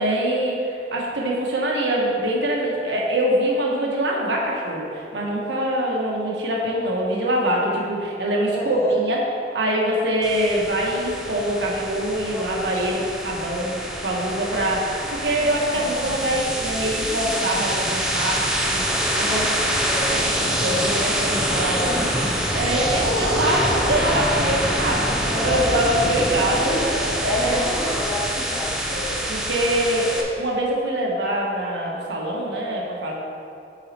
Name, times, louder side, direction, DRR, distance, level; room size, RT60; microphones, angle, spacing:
voice 1, 0.0-9.2 9.5-19.4 20.1-22.1 22.4-27.5 28.9-33.1, right 1 dB, 80° right, -3 dB, 1.3 m, -24 dB
voice 2, 8.5-9.0 12.3-13.2 14.4-14.8 19.3-20.1 21.8-22.4 26.6-26.9 27.3-29.0, left 1 dB, 15° left, -4 dB, 0.9 m, -31 dB
sound 1, 10.2-30.2, equal, 5° right, 0.6 m, -25 dB
8.6 x 4.2 x 4.3 m, 2.6 s
head